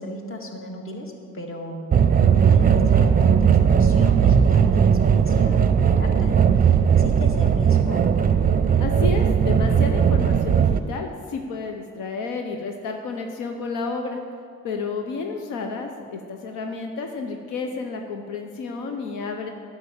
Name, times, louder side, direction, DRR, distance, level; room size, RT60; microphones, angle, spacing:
voice 1, 0.0-8.1, equal, 45° left, 2 dB, 1.9 m, -35 dB
sound 1, 1.9-10.8, right 7 dB, 30° right, 0.5 m, -18 dB
voice 2, 8.8-14.2 14.6-19.5, left 4 dB, 90° left, 4 dB, 0.9 m, -31 dB
9.7 x 6.1 x 8.6 m, 2.3 s
cardioid pair, 90°, 30 cm